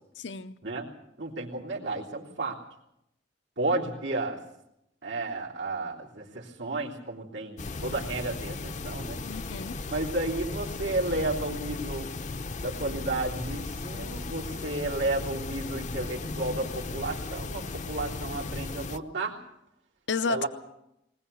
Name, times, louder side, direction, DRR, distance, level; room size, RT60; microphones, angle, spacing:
voice 1, 0.2-0.6 9.2-9.8 20.1-20.5, left 4 dB, 75° left, 12 dB, 0.7 m, -31 dB
voice 2, 1.2-2.6 3.6-4.4 5.0-9.2 9.9-12.1 12.6-19.4 20.3-20.5, right 2 dB, 90° right, -4 dB, 3.5 m, -32 dB
sound 1, 7.6-19.0, left 3 dB, 40° left, 0.7 m, -36 dB
20.5 x 20.0 x 7.0 m, 0.82 s
head